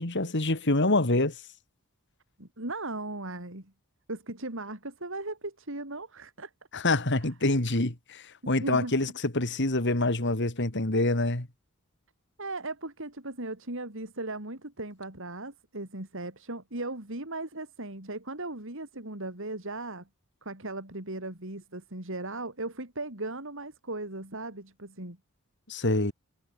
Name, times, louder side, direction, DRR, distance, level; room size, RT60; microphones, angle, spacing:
voice 1, 0.0-1.3 6.7-11.5 25.7-26.1, left 2 dB, 55° left, 2.6 m, -26 dB
voice 2, 2.4-3.7 4.1-6.5 8.6-8.9 12.4-20.1 20.4-25.2, right 2 dB, 60° right, 4.6 m, -37 dB
head